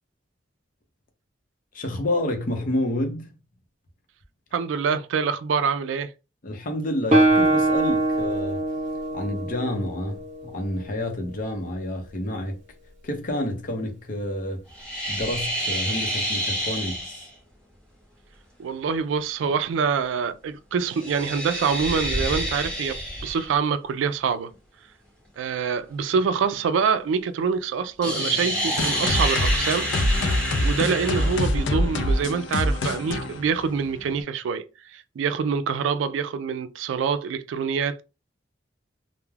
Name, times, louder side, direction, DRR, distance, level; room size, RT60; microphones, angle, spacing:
voice 1, 1.7-3.3 6.4-8.6 9.1-12.6 13.0-14.6 15.1-17.3, left 1 dB, 45° left, 0.6 m, -29 dB
voice 2, 4.5-6.1 18.6-24.5 25.4-29.9 30.6-34.6 34.9-38.0, right 6 dB, 85° right, 0.3 m, -25 dB
Guitar, 7.1-10.8, right 2 dB, 40° right, 0.7 m, -23 dB
sound 1, 14.7-17.3 20.8-23.6 28.0-31.6, equal, 5° left, 0.8 m, -28 dB
sound 2, 28.8-34.2, left 1 dB, 90° left, 0.4 m, -25 dB
2.3 x 2.1 x 3.2 m
head